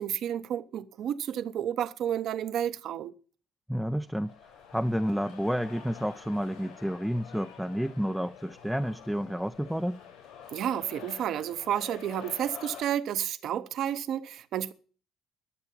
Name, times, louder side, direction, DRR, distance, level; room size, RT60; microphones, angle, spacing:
voice 1, 0.0-3.1 10.5-14.7, right 10 dB, 60° right, 0.9 m, -31 dB
voice 2, 3.7-10.0, equal, ahead, 0.6 m, -30 dB
sound 1, 3.8-12.8, left 8 dB, 70° left, 7.4 m, -48 dB
11.5 x 8.1 x 9.9 m
hypercardioid pair, 55°, 0 cm